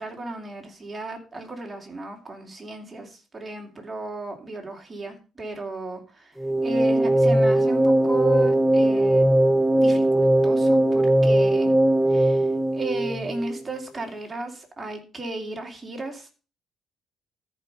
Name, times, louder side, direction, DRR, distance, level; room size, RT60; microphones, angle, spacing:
voice 1, 0.0-6.4 6.6-9.3 9.8-11.7 12.1-12.5 12.7-16.4, right 2 dB, 15° right, 2 dB, 2.8 m, -35 dB
sound 1, 6.4-13.6, right 1 dB, 5° left, 0.7 m, -20 dB
13.5 x 5.4 x 5.6 m, 0.33 s
cardioid pair, 125°, 0 cm